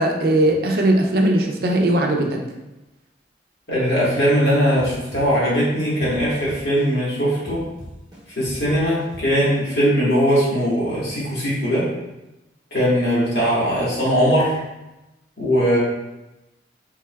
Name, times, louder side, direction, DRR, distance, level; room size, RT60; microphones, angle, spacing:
voice 1, 0.0-2.4, right 1 dB, 55° right, 2 dB, 0.5 m, -19 dB
voice 2, 3.7-7.6 8.4-11.9 12.7-14.6 15.4-15.8, equal, 70° left, -8 dB, 1.4 m, -20 dB
sound 1, 4.8-7.1 7.4-9.8, equal, 25° right, 0.9 m, -39 dB
3.5 x 3.2 x 2.3 m, 0.98 s
head